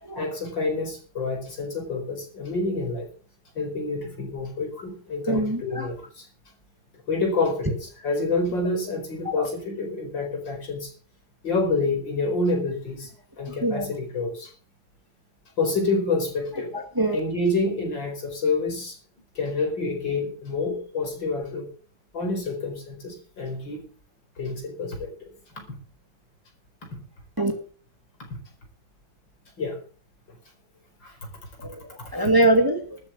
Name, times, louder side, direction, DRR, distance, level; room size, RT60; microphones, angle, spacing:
voice 1, 0.2-3.1 3.6-6.3 7.1-10.9 11.4-13.1 13.4-14.5 15.6-16.7 17.1-19.0 19.4-21.7 22.1-23.8 24.4-25.3 29.6-29.8 31.0-31.1 32.1-32.2, left 3 dB, 70° left, 3 dB, 5.4 m, -28 dB
voice 2, 5.3-5.9 9.2-9.5 13.5-13.9 16.7-17.2 27.4-27.5 31.6-33.0, right 1 dB, 10° right, 5 dB, 2.0 m, -24 dB
13.0 x 8.3 x 8.4 m, 0.42 s
omnidirectional pair, 2.1 m